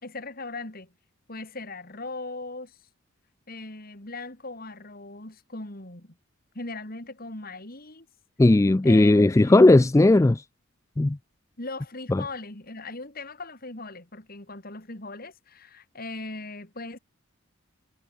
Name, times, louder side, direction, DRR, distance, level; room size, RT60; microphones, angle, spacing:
voice 1, 0.0-0.9 1.3-2.8 3.5-6.2 6.5-8.1 8.8-9.7 11.6-17.0, left 2 dB, 45° left, 3.0 m, -39 dB
voice 2, 8.4-10.4 11.0-11.2 12.1-12.2, left 2 dB, 15° left, 0.3 m, -17 dB
head